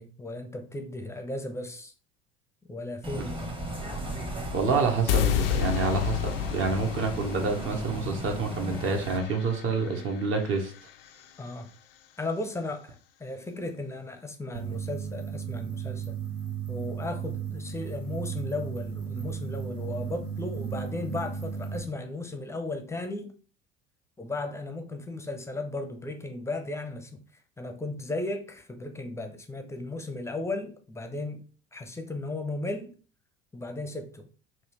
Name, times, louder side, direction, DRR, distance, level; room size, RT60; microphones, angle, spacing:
voice 1, 0.0-1.9 2.6-3.5 11.4-11.7 12.2-16.2 16.7-23.3 24.2-27.2 27.6-32.9 33.5-34.3, left 2 dB, 10° left, 0.6 m, -35 dB
Bus, 3.0-9.2, right 1 dB, 15° right, 0.9 m, -37 dB
voice 2, 4.5-10.7, right 4 dB, 40° right, 0.9 m, -28 dB
sound 1, 5.1-11.2, left 11 dB, 70° left, 0.4 m, -31 dB
sound 2, 14.5-21.8, right 7 dB, 80° right, 1.1 m, -35 dB
4.0 x 2.4 x 3.0 m
figure-of-eight pair, 65°, 30 cm